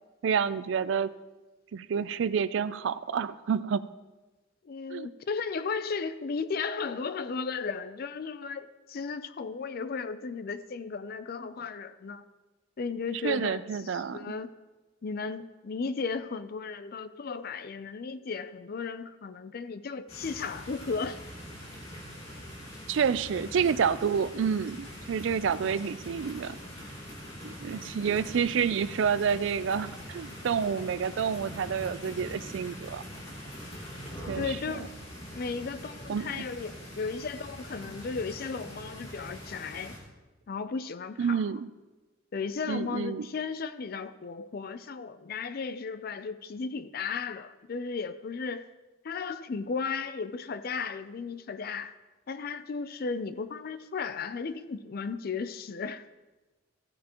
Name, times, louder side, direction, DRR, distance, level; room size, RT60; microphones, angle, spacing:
voice 1, 0.2-1.1 1.7-3.9 4.9-5.1 13.2-14.4 22.9-26.6 27.4-33.0 34.3-34.6 36.1-36.4 41.2-41.7 42.7-43.3, right 6 dB, 65° right, 0.4 m, -29 dB
voice 2, 4.6-12.2 12.8-14.5 15.0-21.2 34.4-34.9 35.3-40.0 40.5-41.4 42.3-48.7 49.0-51.9 52.3-56.0, left 5 dB, 50° left, 0.4 m, -35 dB
sound 1, 20.1-40.0, equal, 30° left, 2.9 m, -43 dB
14.5 x 9.4 x 3.0 m
head